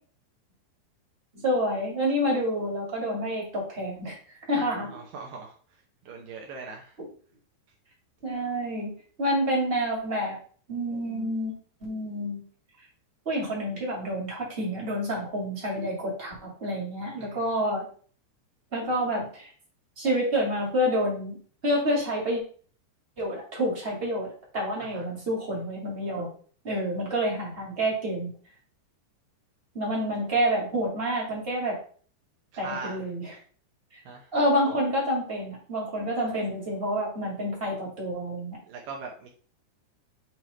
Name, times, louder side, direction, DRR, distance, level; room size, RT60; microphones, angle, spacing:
voice 1, 1.3-4.2 4.5-4.9 8.2-8.9 9.2-10.4 10.7-11.5 11.8-12.4 13.2-16.3 16.6-17.8 18.7-19.5 20.0-22.4 23.2-26.3 26.6-28.3 29.7-31.8 32.6-33.3 34.3-38.6, equal, 25° right, -4 dB, 1.4 m, -28 dB
voice 2, 4.6-5.5 6.1-7.0 17.2-17.6 24.8-25.0 32.5-33.0 34.1-34.3 36.3-36.4 38.7-39.3, right 4 dB, 80° right, 1 dB, 1.9 m, -40 dB
7.9 x 3.2 x 4.3 m, 0.43 s
omnidirectional pair, 5.0 m